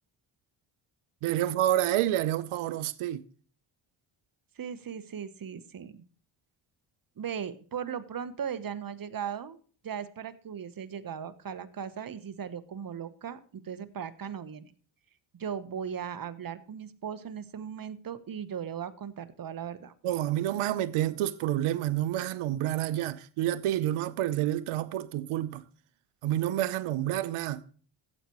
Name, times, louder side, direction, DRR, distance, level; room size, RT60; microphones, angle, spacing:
voice 1, 1.2-3.2 20.0-25.6 26.2-27.6, right 13 dB, 90° right, 0.8 m, -29 dB
voice 2, 4.6-6.0 7.2-9.6 9.8-14.7 15.3-19.9, right 8 dB, 45° right, 1.1 m, -38 dB
14.5 x 8.3 x 3.0 m
cardioid pair, 75°, 48 cm